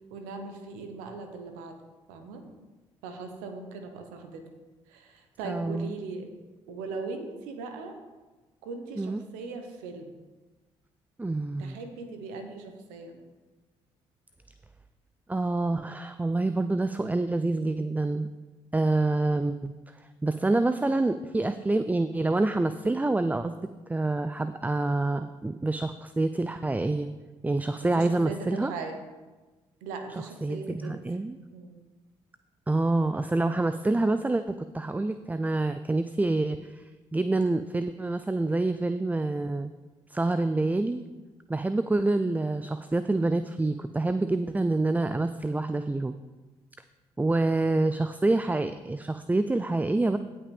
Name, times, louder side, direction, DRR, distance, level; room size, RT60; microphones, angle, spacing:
voice 1, 0.1-1.8 2.1-2.5 3.0-4.5 4.9-6.3 6.7-8.0 8.6-10.1 11.6-13.2 27.8-29.0 29.8-31.0 31.5-31.8 42.2-42.3, right 4 dB, 85° right, 6 dB, 1.1 m, -39 dB
voice 2, 5.4-5.9 9.0-9.2 11.2-11.8 15.3-18.3 18.7-19.7 20.2-23.6 23.9-27.1 27.4-28.7 30.4-31.4 32.7-36.8 37.1-39.7 40.1-41.0 41.5-46.1 47.2-50.2, right 2 dB, 10° right, 11 dB, 0.4 m, -27 dB
16.5 x 5.7 x 3.5 m, 1.2 s
hypercardioid pair, 50°, 14 cm